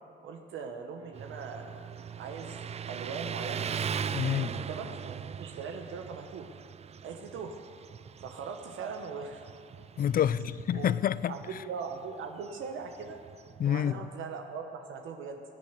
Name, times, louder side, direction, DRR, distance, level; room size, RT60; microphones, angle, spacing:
voice 1, 0.2-1.8 2.2-3.7 4.2-6.5 7.0-7.6 8.2-9.4 10.7-10.9 11.3-13.2 13.6-15.4, right 5 dB, 80° right, 1.1 m, -40 dB
Motorcycle, 1.1-13.8, right 7 dB, 35° right, 0.4 m, -40 dB
voice 2, 4.1-4.5 10.0-11.4 13.6-13.9, left 10 dB, 45° left, 0.4 m, -27 dB
18.0 x 8.7 x 8.2 m
cardioid pair, 90°, 20 cm